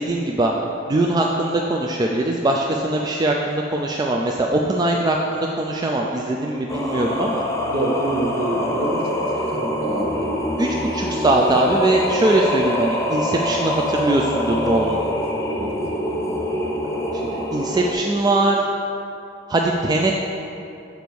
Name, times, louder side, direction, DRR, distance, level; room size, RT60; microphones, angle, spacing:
voice 1, 0.0-7.4 10.6-15.0 17.1-18.7 19.5-20.2, right 2 dB, 20° right, 0 dB, 0.3 m, -21 dB
Singing, 6.7-17.9, left 1 dB, 15° left, 0.6 m, -25 dB
voice 2, 7.6-10.5 14.9-15.1 15.5-16.3, right 2 dB, 50° right, -2 dB, 1.1 m, -27 dB
6.8 x 5.1 x 4.6 m, 2.7 s
head